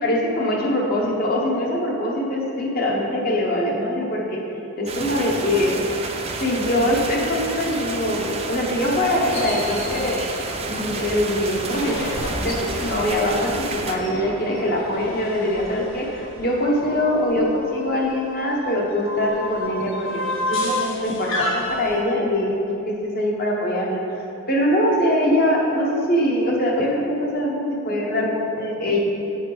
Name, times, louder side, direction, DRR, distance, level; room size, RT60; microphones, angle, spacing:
voice 1, 0.0-4.4 4.8-5.8 6.3-10.2 10.7-24.2 24.5-29.0, left 1 dB, 45° left, -2 dB, 1.1 m, -23 dB
sound 1, 4.9-14.0, right 3 dB, 25° right, 0.4 m, -30 dB
sound 2, 9.3-22.0, left 1 dB, 65° left, 1.1 m, -32 dB
8.4 x 4.3 x 5.0 m, 2.8 s
head